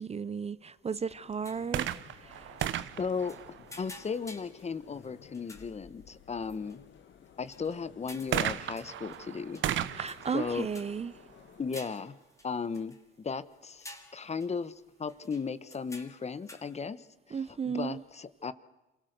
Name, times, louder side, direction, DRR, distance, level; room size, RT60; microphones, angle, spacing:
voice 1, 0.0-1.9 2.2-2.4 9.9-11.1 17.3-18.0, right 6 dB, 30° right, 0.6 m, -34 dB
sound 1, 0.7-11.7, left 8 dB, 70° left, 1.6 m, -56 dB
sound 2, 1.4-2.1 2.6-2.8 3.1-5.1 5.3-5.8 6.4-6.8 7.3-9.2 9.5-10.5 10.7-11.0 11.5-13.1 13.5-13.6 13.8-14.7 15.1-16.8, left 2 dB, 15° left, 3.2 m, -51 dB
sound 3, 1.6-4.2 8.3-12.0 12.8-12.9, right 11 dB, 75° right, 1.0 m, -36 dB
voice 2, 3.0-3.3 3.8-6.8 7.4-9.6 10.3-10.7 11.6-12.1 12.4-14.7 15.0-18.5, left 5 dB, 35° left, 1.2 m, -36 dB
27.0 x 18.0 x 6.7 m
cardioid pair, 90°, 20 cm